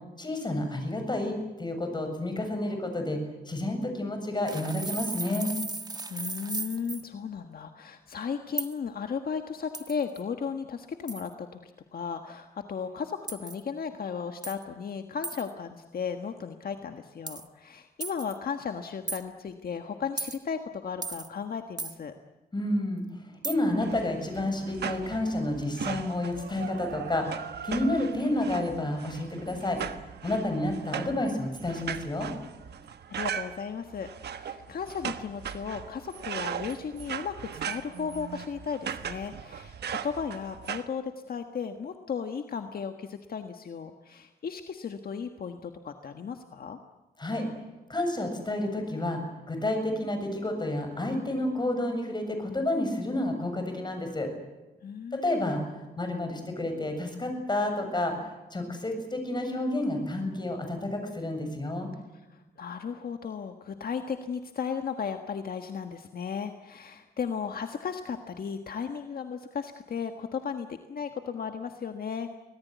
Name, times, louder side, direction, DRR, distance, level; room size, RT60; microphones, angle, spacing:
voice 1, 0.2-5.5 22.5-29.8 30.2-32.3 47.2-47.5 47.9-49.2 49.5-54.3 55.1-55.6 56.0-61.9, left 1 dB, 25° left, 5 dB, 7.3 m, -30 dB
sound 1, 4.5-7.1 8.6-8.7 9.7-10.2 11.1-11.3 13.3-13.6 14.4-14.6 15.2-15.5 17.3-17.5 18.0-18.4 19.1-19.2 20.2-20.4 21.0-21.3 21.8-22.0 23.4-23.6, right 3 dB, 25° right, 1.5 m, -36 dB
voice 2, 6.1-22.1 33.1-46.8 54.8-55.4 62.3-72.3, left 6 dB, 65° left, 6 dB, 1.5 m, -35 dB
sound 2, 23.8-40.9, right 8 dB, 90° right, 1.3 m, -38 dB
25.0 x 18.5 x 9.4 m, 1.1 s
wide cardioid pair, 100°, 17 cm